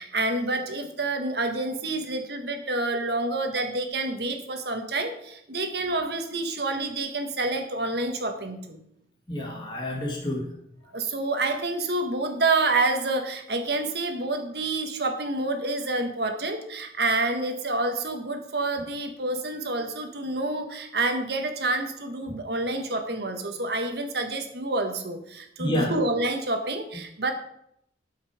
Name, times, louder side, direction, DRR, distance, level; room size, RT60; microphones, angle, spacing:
voice 1, 0.0-8.8 10.9-27.3, right 2 dB, 60° right, 5 dB, 1.5 m, -28 dB
voice 2, 9.3-10.4 25.6-25.9, left 1 dB, 25° left, -2 dB, 1.9 m, -29 dB
12.5 x 5.7 x 5.0 m, 0.74 s
head